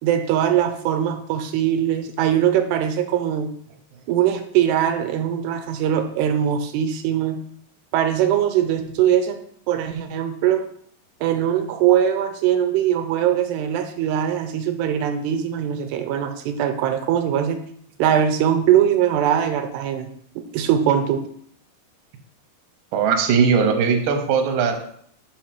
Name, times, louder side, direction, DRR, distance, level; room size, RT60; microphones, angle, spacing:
voice 1, 0.0-3.5 4.1-7.4 7.9-9.4 9.7-10.6 11.2-17.6 18.0-20.1 20.5-21.2, right 10 dB, 90° right, 6 dB, 2.9 m, -21 dB
voice 2, 22.9-24.8, right 6 dB, 70° right, 4 dB, 2.1 m, -19 dB
5.7 x 4.8 x 6.0 m, 0.64 s
omnidirectional pair, 4.8 m